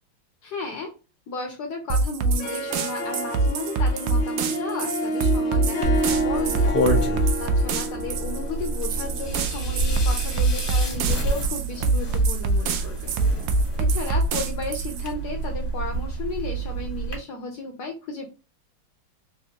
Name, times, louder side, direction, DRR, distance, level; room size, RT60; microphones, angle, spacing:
voice 1, 0.4-1.0 1.3-6.7 7.4-13.1 13.8-18.3, left 3 dB, 70° left, 3 dB, 1.0 m, -34 dB
sound 1, 1.9-15.1, right 3 dB, 85° right, 0.8 m, -24 dB
Harp, 2.2-10.8, right 1 dB, 90° left, 0.6 m, -30 dB
sound 2, 5.8-17.2, right 2 dB, 30° left, 1.1 m, -29 dB
3.4 x 2.6 x 2.7 m, 0.31 s
omnidirectional pair, 2.2 m